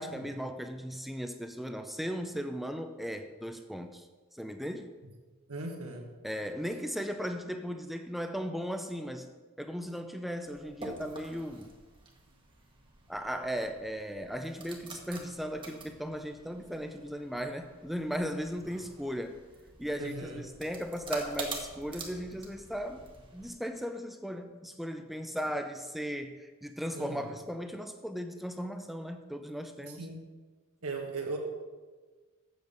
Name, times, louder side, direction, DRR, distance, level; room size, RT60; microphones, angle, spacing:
voice 1, 0.0-4.1 4.3-4.9 6.2-9.3 9.6-11.7 13.1-19.4 19.8-30.1, equal, ahead, 7 dB, 0.4 m, -37 dB
voice 2, 5.5-6.1 20.0-20.4 26.9-27.2 29.8-30.2 30.8-31.4, right 3 dB, 80° right, 2 dB, 1.5 m, -38 dB
sound 1, 10.4-23.5, right 3 dB, 25° right, 1.2 m, -46 dB
7.9 x 7.0 x 5.3 m, 1.3 s
head